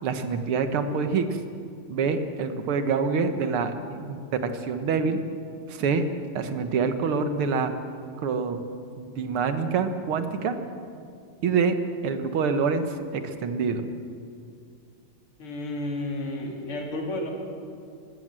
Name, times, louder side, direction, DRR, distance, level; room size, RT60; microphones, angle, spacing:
voice 1, 0.0-1.4 1.9-5.2 5.7-6.0 6.4-7.7 8.2-8.6 9.0-10.6 11.4-11.8 12.0-13.9, right 5 dB, 85° right, 8 dB, 2.1 m, -26 dB
voice 2, 15.4-17.3, left 1 dB, 85° left, 0 dB, 3.9 m, -31 dB
22.0 x 15.5 x 7.6 m, 2.4 s
omnidirectional pair, 2.3 m